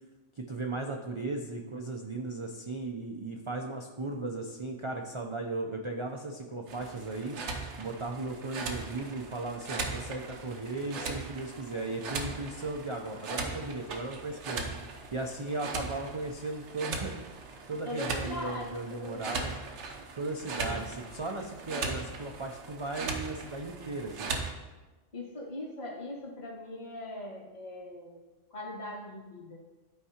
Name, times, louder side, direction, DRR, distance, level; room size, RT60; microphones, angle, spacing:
voice 1, 0.4-7.4 7.8-14.7 15.1-17.1 17.7-19.5 20.2-24.4, right 2 dB, 45° right, 1 dB, 0.4 m, -36 dB
sound 1, 6.7-24.5, right 4 dB, 70° right, 1.1 m, -39 dB
voice 2, 17.8-19.5 20.5-20.9 25.1-28.2 28.5-29.6, left 1 dB, 55° left, -3 dB, 2.0 m, -41 dB
11.5 x 4.6 x 2.8 m, 1.2 s
omnidirectional pair, 1.3 m